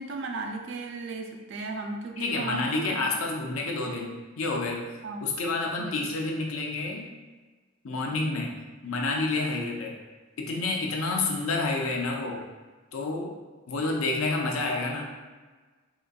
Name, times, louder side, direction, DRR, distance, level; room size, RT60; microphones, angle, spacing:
voice 1, 0.0-3.1 5.0-5.2 5.8-6.0, right 3 dB, 60° right, 4 dB, 0.4 m, -35 dB
voice 2, 2.2-4.8 5.2-7.1 7.8-8.6 8.8-9.9 10.4-12.4 12.9-13.4 13.7-15.0, left 3 dB, 80° left, 0 dB, 0.5 m, -29 dB
3.8 x 2.5 x 2.3 m, 1.3 s
head